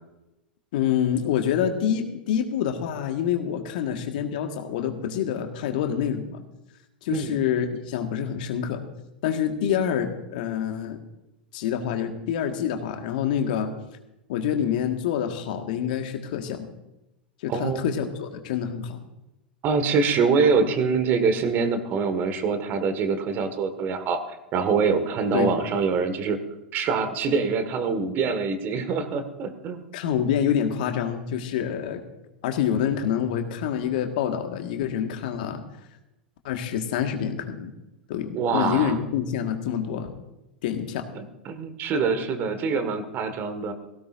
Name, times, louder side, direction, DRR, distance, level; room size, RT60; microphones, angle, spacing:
voice 1, 0.7-6.4 7.0-8.8 9.2-11.0 11.5-13.7 14.3-16.7 17.4-19.0 25.3-25.6 29.9-32.0 32.4-35.6 36.4-37.7 38.1-40.1 40.6-41.1, left 9 dB, 60° left, 5 dB, 1.7 m, -27 dB
voice 2, 17.5-17.8 19.6-24.2 24.5-26.4 26.7-29.8 38.3-38.9 41.2-43.7, right 5 dB, 40° right, 8 dB, 1.8 m, -24 dB
18.0 x 16.5 x 2.6 m, 0.94 s
figure-of-eight pair, 90°, 5 cm